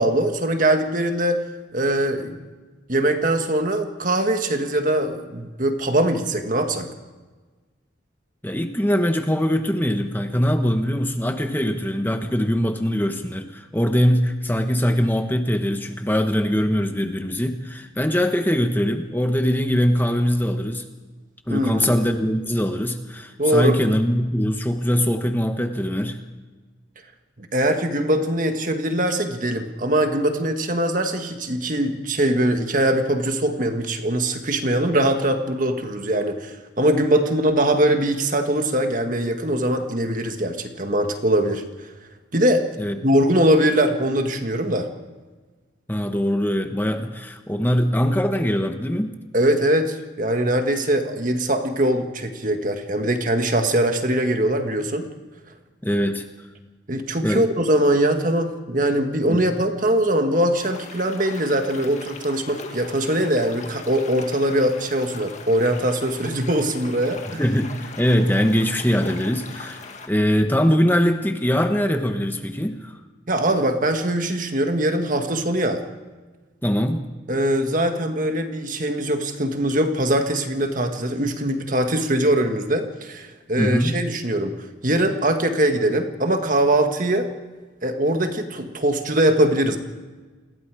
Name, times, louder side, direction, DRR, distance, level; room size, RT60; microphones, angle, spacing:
voice 1, 0.0-1.4 1.7-2.4 2.9-6.9 21.5-21.9 23.4-23.8 27.4-41.6 42.3-42.7 43.0-44.9 49.3-55.1 56.9-67.4 73.3-75.8 77.3-87.3 87.8-89.8, right 1 dB, 40° right, 6 dB, 1.7 m, -22 dB
voice 2, 8.4-20.9 21.5-26.2 42.8-42.9 45.9-49.1 55.8-56.2 57.2-57.5 59.3-59.4 67.3-73.0 76.6-77.1 83.6-84.0, equal, 10° left, 6 dB, 1.0 m, -22 dB
sound 1, 60.6-70.1, left 4 dB, 35° left, 1.8 m, -40 dB
28.5 x 21.0 x 4.9 m, 1.3 s
head